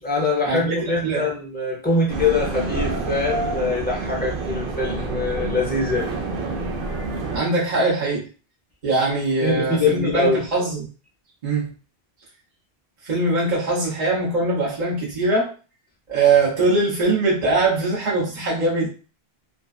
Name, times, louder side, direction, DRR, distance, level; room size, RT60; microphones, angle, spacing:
voice 1, 0.0-6.1 9.4-10.4, left 3 dB, 10° left, -3 dB, 0.6 m, -23 dB
sound 1, 2.1-7.4, right 3 dB, 65° right, 0.8 m, -28 dB
voice 2, 7.3-8.2 8.8-10.8 11.4-11.7 13.0-15.5 16.1-18.9, right 3 dB, 45° right, -6 dB, 0.9 m, -21 dB
2.5 x 2.3 x 2.3 m, 0.36 s
omnidirectional pair, 1.0 m